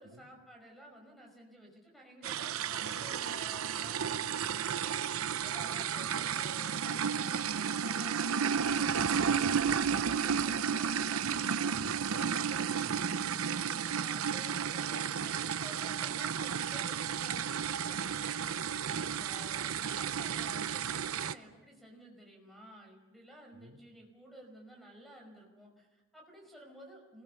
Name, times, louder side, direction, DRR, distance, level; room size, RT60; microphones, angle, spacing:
voice 1, 0.0-11.5 13.5-18.4 18.9-27.2, right 1 dB, ahead, 1 dB, 5.3 m, -53 dB
sound 1, 2.2-21.3, right 7 dB, 80° right, 0.7 m, -32 dB
voice 2, 11.9-13.1 18.9-19.1 23.5-23.8, right 2 dB, 60° right, 4 dB, 1.4 m, -51 dB
27.5 x 21.0 x 6.9 m, 1.2 s
head